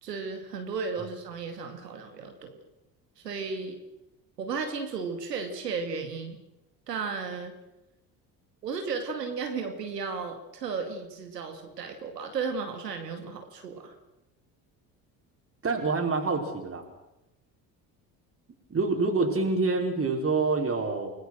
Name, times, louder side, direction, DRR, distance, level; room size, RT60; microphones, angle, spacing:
voice 1, 0.0-2.6 3.2-3.8 4.4-6.4 6.9-7.5 8.6-14.0, right 5 dB, 80° right, 6 dB, 2.6 m, -34 dB
voice 2, 15.6-16.8 18.7-21.1, right 3 dB, 25° right, 1 dB, 5.0 m, -26 dB
29.0 x 19.5 x 6.4 m, 0.92 s
figure-of-eight pair, 60°, 47 cm